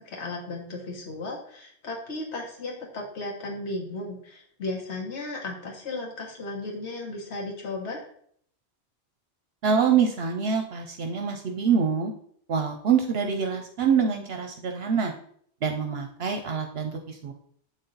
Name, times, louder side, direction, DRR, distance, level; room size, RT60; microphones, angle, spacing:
voice 1, 0.0-8.1, left 2 dB, 85° left, -1 dB, 1.4 m, -35 dB
voice 2, 9.6-12.1 12.5-15.1 15.6-17.3, right 6 dB, 70° right, 4 dB, 0.9 m, -25 dB
7.8 x 4.2 x 3.9 m, 0.62 s
omnidirectional pair, 1.1 m